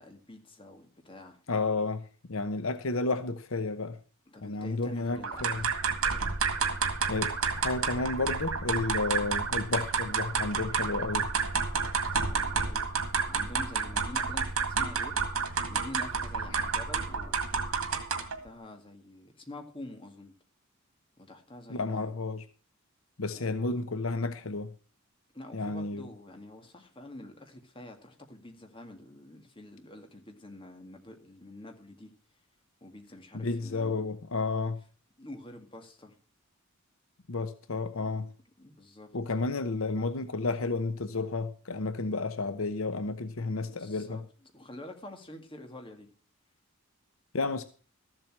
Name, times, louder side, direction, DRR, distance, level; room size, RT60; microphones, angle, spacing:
voice 1, 0.0-1.4 4.3-5.7 10.9-11.3 12.1-17.4 18.2-20.3 21.2-22.1 23.3-23.5 25.3-32.1 32.8-34.2 35.2-36.2 38.0-38.1 38.6-39.2 43.4-44.2 44.5-46.1, left 1 dB, 25° left, 2.1 m, -47 dB
voice 2, 1.5-4.0 4.4-5.7 7.1-11.3 16.5-16.6 21.7-22.4 23.2-24.7 25.5-26.1 33.3-34.8 37.3-38.3 39.1-44.2 47.3-47.6, left 3 dB, 75° left, 0.9 m, -32 dB
sound 1, 5.2-18.4, right 5 dB, 90° right, 1.9 m, -30 dB
14.0 x 7.7 x 6.1 m
head